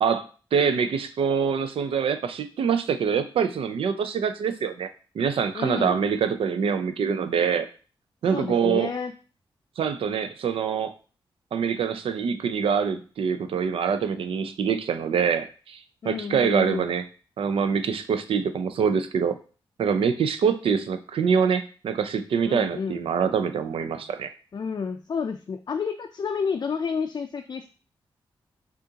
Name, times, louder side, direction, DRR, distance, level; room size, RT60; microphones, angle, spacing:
voice 1, 0.0-4.9 5.1-7.7 8.2-8.9 9.8-10.9 11.5-17.0 17.4-19.4 19.8-24.3, right 6 dB, 80° right, 9 dB, 0.4 m, -25 dB
voice 2, 5.5-6.0 8.3-9.1 16.0-16.9 22.5-23.0 24.5-27.7, left 5 dB, 45° left, 5 dB, 0.4 m, -30 dB
6.3 x 2.5 x 2.8 m, 0.38 s
cardioid pair, 70°, 9 cm